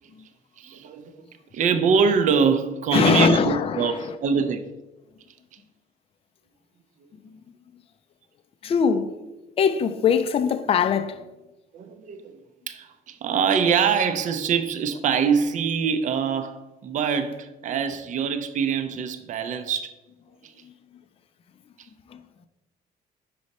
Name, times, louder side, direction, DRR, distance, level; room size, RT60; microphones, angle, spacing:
voice 1, 0.6-1.2 1.5-4.6 11.7-12.4 12.7-19.9 20.4-20.5 21.8-21.9, right 6 dB, 45° right, 0.5 m, -24 dB
voice 2, 2.9-4.1 8.6-9.1 9.6-11.2, left 6 dB, 35° left, 0.4 m, -21 dB
5.3 x 4.9 x 4.1 m
cardioid pair, 110°, 17 cm